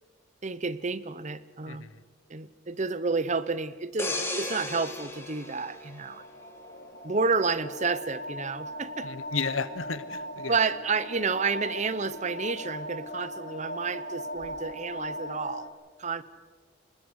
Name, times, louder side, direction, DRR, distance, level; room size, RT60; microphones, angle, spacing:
voice 1, 0.4-1.9 2.3-6.2 7.0-9.1 10.5-15.7 16.0-16.2, right 4 dB, 35° right, 16 dB, 0.8 m, -30 dB
sound 1, 4.0-6.7 7.1-7.3, left 2 dB, 15° left, 2.6 m, -35 dB
sound 2, 5.1-15.7, equal, 55° left, 2.9 m, -39 dB
voice 2, 9.0-10.6, left 5 dB, 85° left, 14 dB, 1.1 m, -33 dB
26.0 x 20.5 x 6.5 m, 1.5 s
head